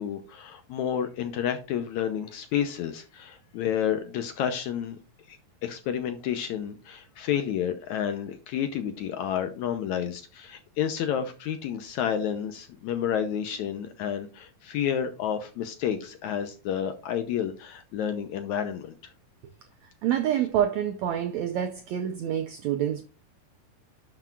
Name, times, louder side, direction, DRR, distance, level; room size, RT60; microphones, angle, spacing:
voice 1, 0.0-5.0 5.3-19.1, left 9 dB, 75° left, 1.8 m, -30 dB
voice 2, 20.0-23.0, right 10 dB, 85° right, 1.6 m, -27 dB
11.0 x 5.9 x 2.4 m
omnidirectional pair, 4.0 m